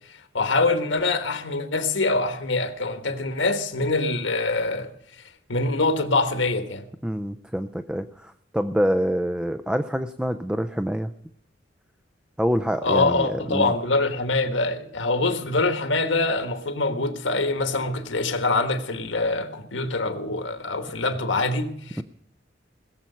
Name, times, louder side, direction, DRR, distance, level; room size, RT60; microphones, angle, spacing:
voice 1, 0.1-4.9 5.5-6.8 12.8-22.0, left 3 dB, 80° left, 1.4 m, -24 dB
voice 2, 7.0-11.1 12.4-13.7 22.0-22.1, equal, 5° right, 0.4 m, -26 dB
20.0 x 7.5 x 5.6 m
head